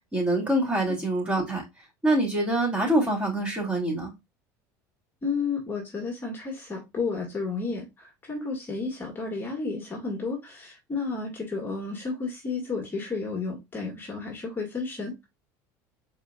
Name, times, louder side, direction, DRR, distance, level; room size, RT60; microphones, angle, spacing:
voice 1, 0.1-1.6 2.0-4.1, right 1 dB, 15° right, 2.9 m, -25 dB
voice 2, 5.2-15.3, left 4 dB, 20° left, 1.8 m, -32 dB
4.8 x 4.4 x 2.5 m
supercardioid pair, 110°, 9 cm